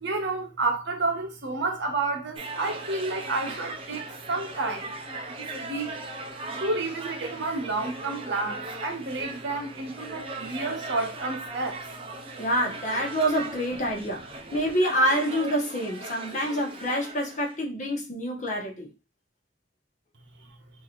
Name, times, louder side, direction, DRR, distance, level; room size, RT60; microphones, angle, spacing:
voice 1, 0.0-4.9 5.4-6.0 6.6-11.9, right 3 dB, 60° right, 0.9 m, -30 dB
sound 1, 2.4-17.6, right 2 dB, 30° right, 0.6 m, -38 dB
voice 2, 12.4-14.3 14.5-18.9, equal, 40° left, 1.2 m, -27 dB
3.8 x 2.8 x 3.0 m
head